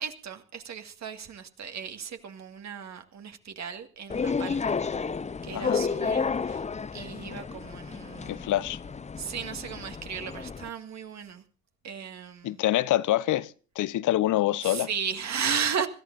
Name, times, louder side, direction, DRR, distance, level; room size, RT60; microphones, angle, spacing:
voice 1, 0.0-4.7 5.4-6.6 6.9-8.5 9.2-11.4 11.8-12.6 14.6-15.9, right 7 dB, 40° right, 2.0 m, -35 dB
sound 1, 4.1-10.7, left 5 dB, 15° left, 0.8 m, -31 dB
voice 2, 5.5-5.8 8.3-8.8 12.4-14.9, left 14 dB, 50° left, 0.9 m, -26 dB
26.0 x 14.5 x 2.7 m
figure-of-eight pair, 55°, 41 cm